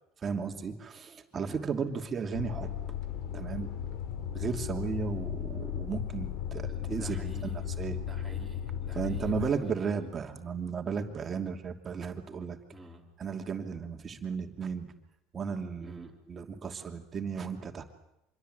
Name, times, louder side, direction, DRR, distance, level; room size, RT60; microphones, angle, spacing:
voice 1, 0.2-2.8 3.3-3.7 4.3-7.3 7.8-8.0 9.0-12.6 13.2-14.9 15.3-17.8, right 6 dB, 30° right, 4 dB, 2.8 m, -34 dB
voice 2, 1.3-1.6 6.7-7.7 7.9-10.1 12.7-13.1 15.8-16.2, equal, ahead, -4 dB, 4.1 m, -49 dB
sound 1, 2.3-9.5, left 9 dB, 70° left, 2.9 m, -36 dB
26.5 x 21.5 x 8.1 m, 0.83 s
supercardioid pair, 110°, 0 cm